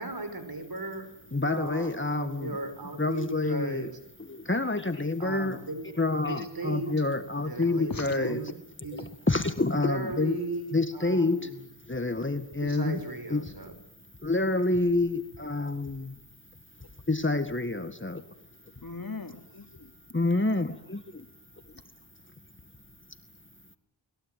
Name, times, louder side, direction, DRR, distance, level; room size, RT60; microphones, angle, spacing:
voice 1, 0.0-1.1 1.4-4.0 5.2-5.9 6.2-7.0 7.4-8.5 8.8-9.1 9.7-11.6 12.6-13.8, right 2 dB, 50° right, 10 dB, 6.1 m, -37 dB
voice 2, 1.3-2.5 3.0-3.9 4.2-5.6 6.0-8.4 9.3-10.4 10.7-11.5 11.9-13.0 13.3-13.4 14.2-16.1 17.1-18.2 20.1-21.3, left 2 dB, 25° left, 9 dB, 1.9 m, -28 dB
voice 3, 7.6-8.4 18.8-19.9, left 3 dB, 45° left, 6 dB, 3.4 m, -40 dB
29.5 x 21.5 x 9.4 m, 0.74 s
wide cardioid pair, 50°, 46 cm